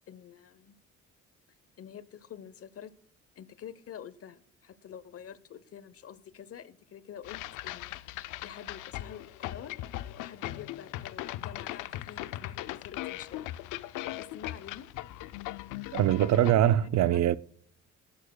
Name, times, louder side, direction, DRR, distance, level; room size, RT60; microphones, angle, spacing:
voice 1, 0.1-0.7 1.8-2.9 3.4-9.8 10.2-13.5 13.8-14.9 16.4-17.2, left 9 dB, 50° left, 0.8 m, -47 dB
sound 1, 7.2-16.6, left 15 dB, 90° left, 0.5 m, -39 dB
voice 2, 15.9-17.4, right 12 dB, 65° right, 0.5 m, -23 dB
18.0 x 11.0 x 2.2 m
cardioid pair, 90°, 30 cm